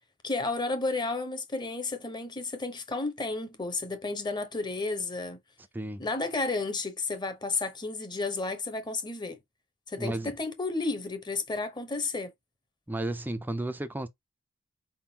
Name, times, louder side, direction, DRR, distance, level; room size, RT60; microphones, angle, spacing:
voice 1, 0.2-5.4 6.0-9.4 9.9-12.3, left 3 dB, 20° left, 0.9 m, -32 dB
voice 2, 10.0-10.3 12.9-14.1, right 1 dB, 10° right, 0.4 m, -33 dB
4.6 x 3.7 x 2.8 m
head